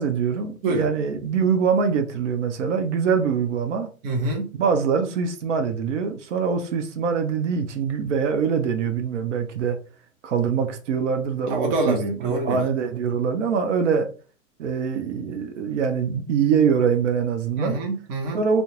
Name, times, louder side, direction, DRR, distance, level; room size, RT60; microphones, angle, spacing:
voice 1, 0.0-3.9 4.5-9.8 10.2-12.0 12.2-14.1 14.6-17.8 18.3-18.6, right 6 dB, 60° right, 0.6 m, -23 dB
voice 2, 4.0-4.5 11.5-12.6 17.6-18.4, right 2 dB, 20° right, 0.5 m, -25 dB
2.3 x 2.1 x 3.0 m
hypercardioid pair, 115°, 41 cm